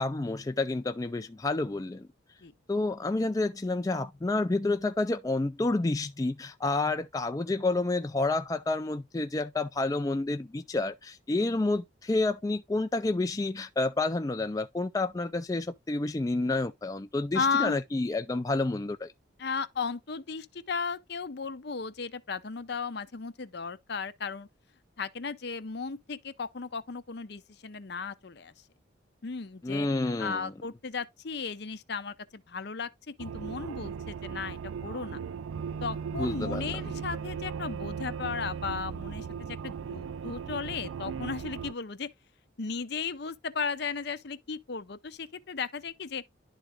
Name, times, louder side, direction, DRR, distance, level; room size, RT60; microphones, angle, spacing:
voice 1, 0.0-2.1 2.7-19.1 29.6-30.5 36.2-36.8, left 2 dB, 20° left, 0.3 m, -29 dB
voice 2, 17.3-17.8 19.4-24.5 25.0-28.5 29.2-29.9 30.2-35.2 35.8-42.1 42.6-46.2, left 5 dB, 60° left, 0.7 m, -35 dB
sound 1, 33.2-41.7, right 6 dB, 90° right, 0.4 m, -37 dB
11.0 x 3.8 x 3.5 m
head